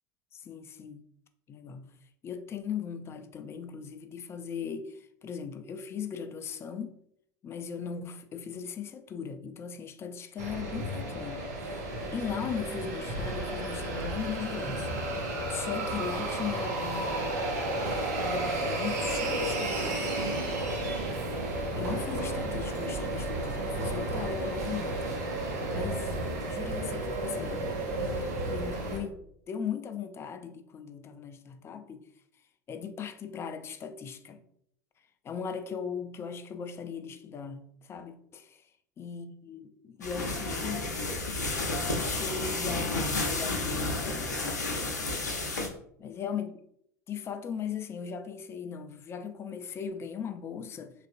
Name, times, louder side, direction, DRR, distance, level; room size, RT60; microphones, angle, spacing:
voice 1, 0.3-1.0 1.5-1.9 2.2-6.9 7.4-11.9 12.1-14.9 15.2-17.9 18.2-20.3 21.8-25.2 25.7-26.2 26.5-32.1 32.7-34.4 35.2-38.6 39.0-40.9 41.9-44.7 46.0-46.6 47.1-50.9, left 7 dB, 30° left, 0.3 m, -38 dB
sound 1, 10.4-29.0, right 1 dB, 70° right, 0.7 m, -32 dB
sound 2, 40.0-45.7, left 2 dB, 85° left, 0.5 m, -31 dB
3.2 x 2.5 x 2.5 m
figure-of-eight pair, 75°, 9 cm